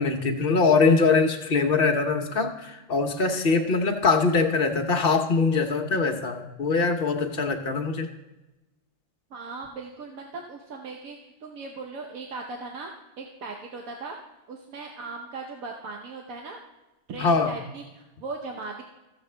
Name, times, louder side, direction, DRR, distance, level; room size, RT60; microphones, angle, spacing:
voice 1, 0.0-8.1 17.2-17.5, left 4 dB, 45° left, 5 dB, 1.0 m, -23 dB
voice 2, 9.3-12.9 13.2-14.1 14.5-16.6 17.1-18.8, right 3 dB, 85° right, 1 dB, 1.3 m, -38 dB
14.5 x 7.2 x 3.3 m, 1.0 s
omnidirectional pair, 1.4 m